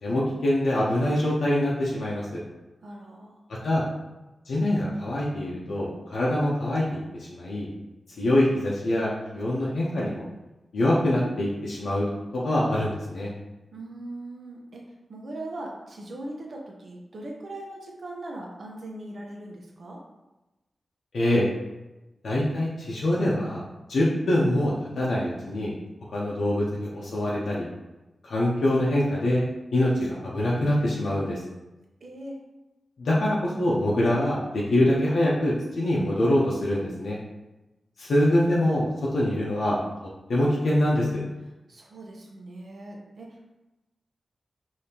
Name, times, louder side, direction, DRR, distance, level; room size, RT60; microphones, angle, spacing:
voice 1, 0.0-2.4 3.5-3.8 4.5-7.7 8.2-10.2 10.7-12.1 12.3-13.3 21.1-21.5 22.2-23.6 23.9-25.7 26.1-27.7 28.2-29.5 29.7-31.4 33.0-37.2 38.0-39.8 40.3-41.2, left 1 dB, 85° left, -6 dB, 0.7 m, -24 dB
voice 2, 2.8-3.4 13.7-20.0 32.0-32.4 41.7-43.5, right 1 dB, 55° right, -1 dB, 0.8 m, -40 dB
5.1 x 2.8 x 2.9 m, 1.0 s
wide cardioid pair, 140°, 0 cm